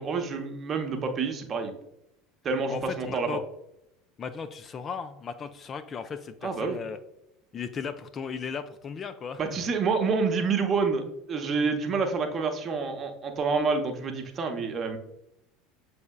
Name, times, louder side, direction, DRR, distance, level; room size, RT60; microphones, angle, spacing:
voice 1, 0.0-1.7 2.4-3.4 6.4-6.8 9.4-11.0 11.3-15.0, right 4 dB, 35° right, 5 dB, 0.8 m, -28 dB
voice 2, 2.7-3.4 4.2-7.0 7.5-9.4, left 6 dB, 30° left, 9 dB, 0.3 m, -36 dB
7.0 x 3.4 x 2.3 m, 0.82 s
figure-of-eight pair, 70°, 0 cm